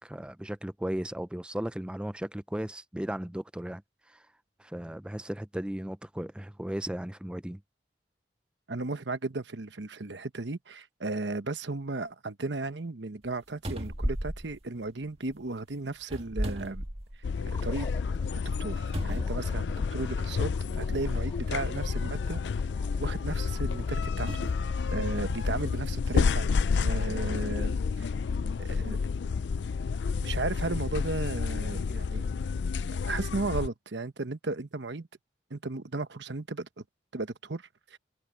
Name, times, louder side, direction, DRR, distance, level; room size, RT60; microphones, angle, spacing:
voice 1, 0.0-3.8 4.1-4.2 4.6-7.6, right 1 dB, 5° right, 0.4 m, -36 dB
voice 2, 8.7-16.8 17.5-17.9 18.4-22.4 23.0-24.4 24.9-26.5 26.8-28.1 28.6-29.0 30.2-32.2 32.9-35.1 35.5-36.7 37.1-38.0, right 3 dB, 85° right, 1.1 m, -35 dB
sound 1, 13.2-13.3 13.6-15.3 16.0-17.4 17.9-18.0 18.9-20.1 21.0-21.1 24.3-25.9 26.6-26.7, equal, 35° right, 1.9 m, -36 dB
sound 2, 17.2-33.7, left 5 dB, 80° left, 0.4 m, -30 dB
sound 3, 17.5-29.7, left 2 dB, 25° left, 7.7 m, -54 dB
head